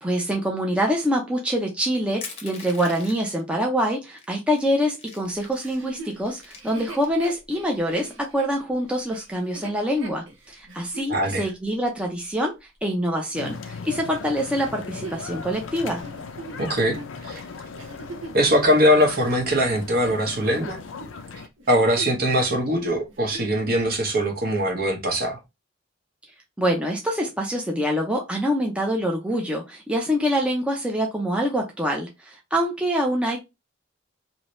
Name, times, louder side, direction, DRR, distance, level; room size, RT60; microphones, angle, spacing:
voice 1, 0.0-16.0 26.6-33.4, equal, 5° right, 0.5 m, -25 dB
Crushing, 2.2-3.4 4.2-4.3 4.6-5.8 6.2-7.3, left 5 dB, 30° left, 0.7 m, -41 dB
Chuckle chortle, 5.6-11.1 11.7-11.8 14.5-18.5 19.1-20.6 20.8-21.1 21.6-22.3 22.6-22.7 23.1-23.6 24.2-24.3, right 2 dB, 80° right, 0.9 m, -41 dB
voice 2, 11.1-11.4 16.6-17.4 18.3-20.8 21.7-25.4, equal, 50° right, 0.9 m, -21 dB
sound 1, 13.3-21.5, left 5 dB, 85° left, 0.5 m, -38 dB
2.8 x 2.7 x 3.1 m
head